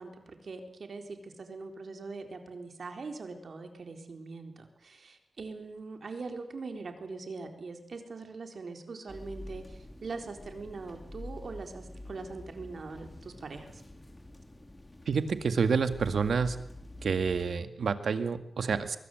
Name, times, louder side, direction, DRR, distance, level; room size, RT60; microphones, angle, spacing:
voice 1, 0.0-13.8, right 3 dB, 55° right, 5 dB, 4.0 m, -42 dB
sound 1, 9.1-17.6, left 1 dB, 15° left, 2.5 m, -47 dB
voice 2, 15.1-16.6 17.0-19.0, right 5 dB, 70° right, 9 dB, 2.0 m, -28 dB
24.5 x 22.5 x 8.0 m, 0.71 s
wide cardioid pair, 155°, 0 cm